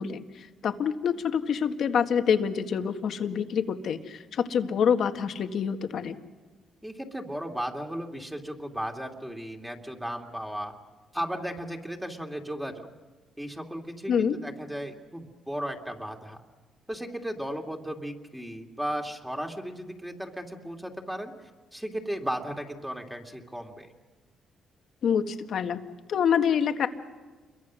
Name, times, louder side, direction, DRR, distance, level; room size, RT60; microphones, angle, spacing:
voice 1, 0.0-6.2 14.1-14.3 25.0-25.8 26.1-26.9, left 7 dB, 65° left, 8 dB, 1.5 m, -26 dB
voice 2, 6.8-10.7 11.1-12.9 13.4-16.4 16.9-21.3 21.7-23.9, equal, 5° right, 2 dB, 2.5 m, -35 dB
28.5 x 22.5 x 6.3 m, 1.3 s
cardioid pair, 90°, 0 cm